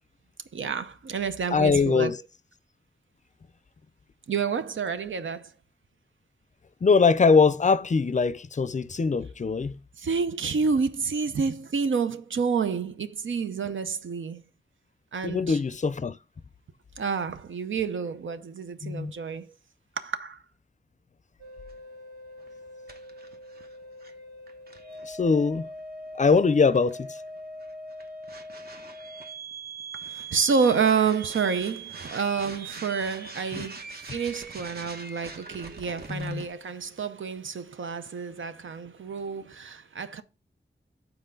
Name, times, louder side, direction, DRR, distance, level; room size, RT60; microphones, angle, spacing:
voice 1, 0.5-2.1 4.3-5.5 10.0-14.4 15.1-15.6 17.0-19.5 20.0-20.4 30.0-40.2, right 5 dB, 85° right, 0.7 m, -29 dB
voice 2, 1.5-2.2 6.8-9.8 15.2-16.2 18.8-19.1 25.0-25.7 26.1-27.2 33.6-33.7 36.1-36.4, left 4 dB, 40° left, 0.4 m, -22 dB
sound 1, 21.4-36.5, right 2 dB, 55° right, 1.1 m, -42 dB
8.0 x 4.4 x 3.8 m
wide cardioid pair, 115°, 20 cm